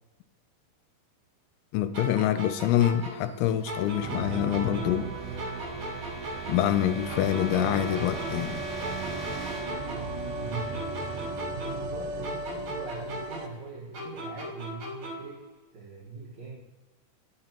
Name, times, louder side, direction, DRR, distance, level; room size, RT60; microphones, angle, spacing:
voice 1, 1.7-5.1 6.5-8.6, left 11 dB, 85° left, 10 dB, 2.8 m, -26 dB
sound 1, 1.9-5.1 5.4-8.5 8.8-12.0 12.2-15.4, equal, 45° right, 3.3 m, -38 dB
sound 2, 2.8-12.5, right 3 dB, 15° left, 1.9 m, -42 dB
sound 3, 4.0-13.5, right 3 dB, 75° right, 3.0 m, -37 dB
voice 2, 10.3-10.8 11.5-16.6, right 4 dB, 60° right, -3 dB, 1.9 m, -41 dB
18.0 x 6.8 x 2.9 m, 1.1 s
omnidirectional pair, 5.2 m